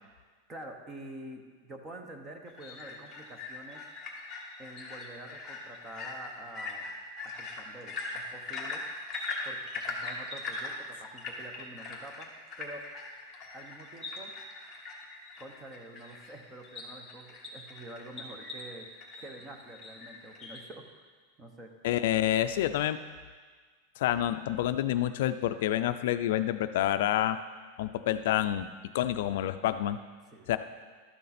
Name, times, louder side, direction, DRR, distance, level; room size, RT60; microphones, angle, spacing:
voice 1, 0.5-3.8 4.6-6.9 7.2-8.8 9.4-12.9 13.5-14.3 15.4-18.9 19.2-20.9 21.4-21.7 30.3-30.5, right 1 dB, 15° right, 4 dB, 0.8 m, -47 dB
sound 1, 2.5-20.6, left 3 dB, 10° left, 1.2 m, -41 dB
voice 2, 21.8-23.0 24.0-27.4 27.8-28.7 28.9-30.0 30.5-30.6, left 12 dB, 60° left, 10 dB, 0.3 m, -28 dB
12.0 x 6.7 x 4.2 m, 1.5 s
supercardioid pair, 175°, 0 cm